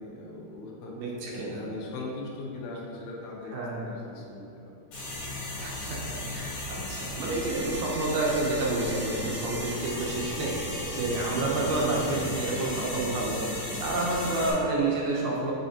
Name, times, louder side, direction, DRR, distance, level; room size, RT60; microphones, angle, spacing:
voice 1, 0.0-1.0 1.3-4.7 5.0-5.1, left 2 dB, 80° left, -2 dB, 2.9 m, -40 dB
voice 2, 1.0-1.6 3.5-3.9 5.6-13.4 13.8-15.5, right 2 dB, 75° right, -3 dB, 2.5 m, -29 dB
sound 1, 4.9-14.5, left 1 dB, 55° left, 2.4 m, -35 dB
7.4 x 5.6 x 2.8 m, 2.8 s
omnidirectional pair, 4.8 m